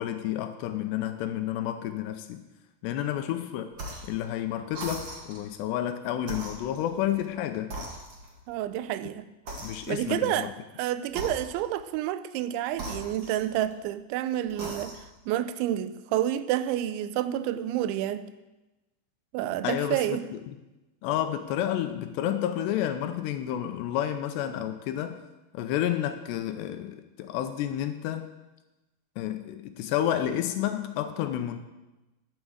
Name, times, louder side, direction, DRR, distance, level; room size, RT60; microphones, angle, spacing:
voice 1, 0.0-2.4 2.8-3.7 4.0-7.7 9.6-10.5 19.6-20.2 20.5-20.6 21.0-25.2 25.5-28.3 29.2-31.6, left 11 dB, 80° left, 8 dB, 2.7 m, -30 dB
sound 1, 3.7-4.2 4.7-5.5 6.2-7.3 7.7-8.5 9.5-10.2 11.1-11.8 12.7-13.9 14.5-15.2, right 1 dB, 70° right, 1.1 m, -40 dB
voice 2, 8.5-9.3 9.9-10.5 10.8-15.0 15.3-18.3 19.3-20.3, right 12 dB, 90° right, 13 dB, 3.0 m, -29 dB
11.5 x 7.0 x 7.8 m, 1.1 s
omnidirectional pair, 5.2 m